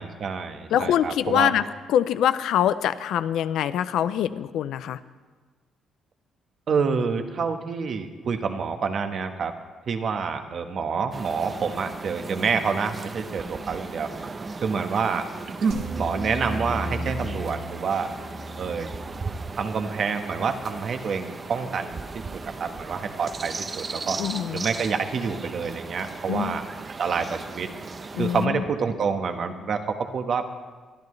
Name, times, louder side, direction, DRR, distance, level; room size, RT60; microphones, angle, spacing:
voice 1, 0.0-1.5 6.7-9.5 9.9-14.1 14.6-15.3 15.6-18.1 18.6-18.9 19.5-22.0 22.3-24.2 24.5-26.6 27.0-27.7 28.2-30.4, right 5 dB, 55° right, 6 dB, 1.3 m, -27 dB
voice 2, 0.7-1.6 1.9-5.0 24.2-24.7 26.3-26.6 28.1-28.6, left 10 dB, 80° left, 14 dB, 0.5 m, -24 dB
sound 1, 11.1-28.5, right 3 dB, 35° right, 0.7 m, -37 dB
sound 2, 15.7-20.9, right 1 dB, 85° right, 2.2 m, -36 dB
22.5 x 12.0 x 3.2 m, 1.4 s
cardioid pair, 90°, 0 cm